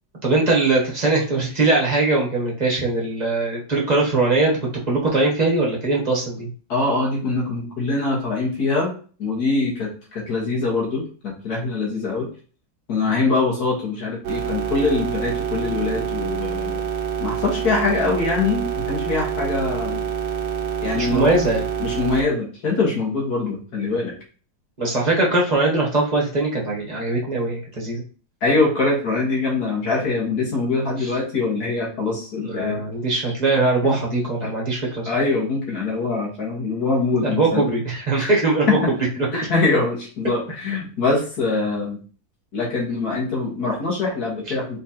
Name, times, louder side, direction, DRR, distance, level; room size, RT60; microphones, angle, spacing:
voice 1, 0.2-4.6 4.9-6.5 20.9-21.6 24.8-28.0 31.0-31.1 32.4-35.1 37.1-38.9, right 2 dB, 30° right, -3 dB, 1.1 m, -21 dB
voice 2, 6.7-8.9 9.2-12.3 12.9-16.8 17.2-20.1 20.8-21.3 21.8-24.2 28.4-32.8 33.8-34.0 34.4-34.5 35.1-37.7 38.2-38.3 38.7-38.8 39.3-42.0 42.5-44.8, left 3 dB, 75° left, -2 dB, 2.0 m, -23 dB
sound 1, 14.2-22.2, right 8 dB, 65° right, 1.2 m, -26 dB
4.3 x 3.8 x 2.8 m, 0.40 s
omnidirectional pair, 1.7 m